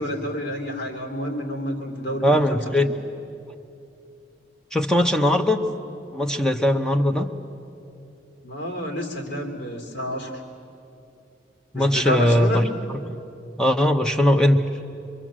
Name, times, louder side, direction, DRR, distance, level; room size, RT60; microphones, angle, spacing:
voice 1, 0.0-2.6 8.4-10.3 11.7-12.6, equal, 70° left, 1 dB, 3.0 m, -29 dB
voice 2, 2.2-2.9 4.7-5.6 6.1-7.3 11.7-12.6 13.1-13.2 13.6-14.6, left 1 dB, 5° left, 4 dB, 0.8 m, -20 dB
25.0 x 23.0 x 7.5 m, 2.7 s
head